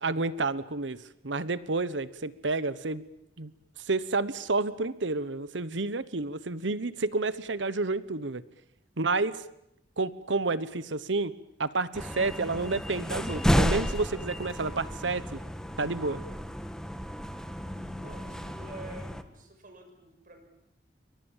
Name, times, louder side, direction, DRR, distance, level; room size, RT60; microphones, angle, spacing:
voice 1, 0.0-1.0 1.2-3.0 3.4-3.5 3.9-8.4 9.0-9.3 10.0-11.3 11.6-15.4 15.8-16.2, right 3 dB, 90° right, 16 dB, 1.1 m, -30 dB
sound 1, 11.9-19.2, equal, 5° left, 1.5 m, -32 dB
voice 2, 18.0-20.4, right 1 dB, 50° right, 5 dB, 6.3 m, -48 dB
28.5 x 24.0 x 7.4 m, 0.76 s
head